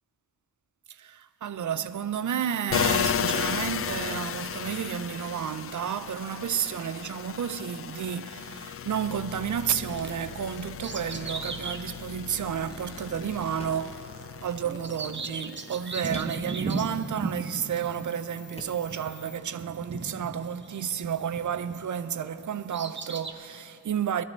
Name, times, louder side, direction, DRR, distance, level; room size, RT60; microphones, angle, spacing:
voice 1, 0.9-24.2, right 8 dB, 55° right, 0.6 m, -31 dB
sound 1, 2.7-16.1 16.5-19.4, left 8 dB, 40° left, 0.4 m, -35 dB
Bird vocalization bird call bird song, 9.9-22.0 22.4-23.3, right 3 dB, 30° right, 0.9 m, -37 dB
sound 2, 13.6-14.0 16.1-16.5 17.9-18.0 18.6-18.9, left 1 dB, 15° left, 1.2 m, -45 dB
19.0 x 12.5 x 3.4 m
cardioid pair, 50°, 36 cm